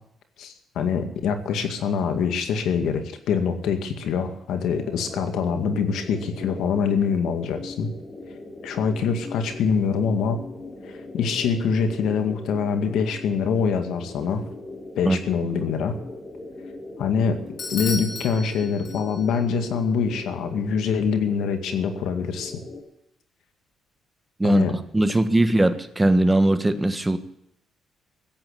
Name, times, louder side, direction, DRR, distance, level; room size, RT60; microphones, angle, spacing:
voice 1, 0.4-7.9 8.6-10.4 10.9-14.4 15.0-16.0 17.0-17.4 17.7-22.5 24.4-24.7, left 6 dB, 80° left, 7 dB, 2.2 m, -24 dB
sound 1, 4.7-22.8, left 2 dB, 30° left, 6.0 m, -40 dB
Bell / Doorbell, 17.6-19.4, left 4 dB, 50° left, 3.8 m, -34 dB
voice 2, 24.9-27.2, right 1 dB, 15° right, 9 dB, 1.5 m, -20 dB
15.5 x 8.7 x 8.5 m, 0.75 s
cardioid pair, 90°, 0 cm